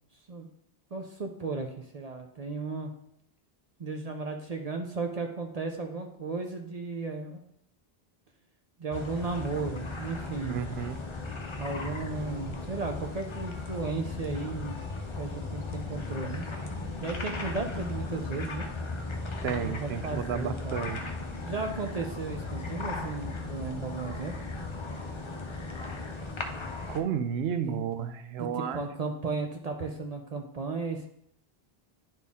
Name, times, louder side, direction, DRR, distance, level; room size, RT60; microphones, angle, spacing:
voice 1, 0.9-2.9 3.8-7.4 8.8-10.6 11.6-14.8 15.2-16.4 17.0-18.7 19.6-20.8 21.4-24.4 27.6-27.8 28.4-31.1, right 4 dB, 45° right, 3 dB, 0.6 m, -35 dB
sound 1, 8.9-27.0, left 3 dB, 35° left, 0.6 m, -37 dB
voice 2, 10.5-11.0 19.4-21.0 26.9-28.9, right 8 dB, 80° right, 11 dB, 0.8 m, -32 dB
9.9 x 4.2 x 3.6 m, 0.73 s
omnidirectional pair, 1.0 m